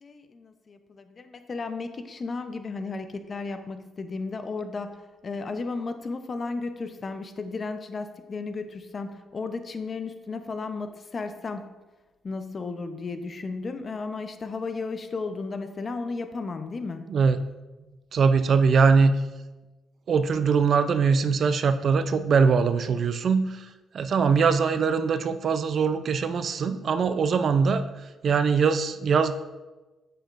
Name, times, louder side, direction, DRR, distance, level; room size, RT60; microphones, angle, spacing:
voice 1, 0.0-11.7 12.2-17.0, left 4 dB, 40° left, 8 dB, 0.7 m, -34 dB
voice 2, 18.1-19.2 20.1-23.7 23.9-27.8 28.2-29.3, right 5 dB, 55° right, 11 dB, 0.5 m, -22 dB
8.8 x 7.7 x 2.6 m, 1.1 s
cardioid pair, 90°, 0 cm